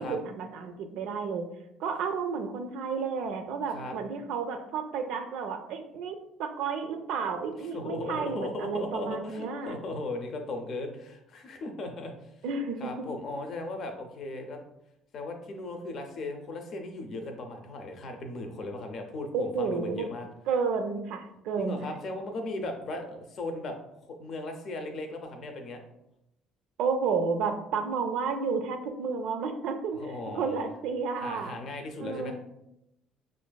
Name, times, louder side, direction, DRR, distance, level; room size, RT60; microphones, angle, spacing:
voice 1, 0.0-1.5 1.8-9.8 12.4-13.0 19.3-20.1 20.5-22.0 26.8-30.0 30.4-31.5 32.0-32.3, right 5 dB, 75° right, 6 dB, 0.4 m, -31 dB
voice 2, 7.7-12.1 12.8-14.6 15.1-20.3 21.6-25.8 29.9-30.7 31.2-32.3, left 2 dB, 45° left, 5 dB, 0.5 m, -37 dB
5.5 x 2.5 x 2.2 m, 0.84 s
cardioid pair, 145°, 0 cm